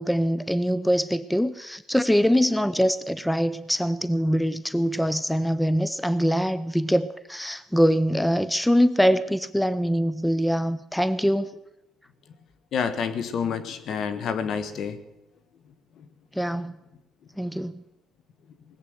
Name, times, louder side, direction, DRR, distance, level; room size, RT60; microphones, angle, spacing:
voice 1, 0.0-11.5 16.3-16.7 17.4-17.8, equal, 5° left, 16 dB, 0.6 m, -23 dB
voice 2, 12.7-15.0, left 6 dB, 65° left, 12 dB, 1.4 m, -28 dB
19.0 x 8.3 x 7.9 m, 0.94 s
cardioid pair, 85°, 0 cm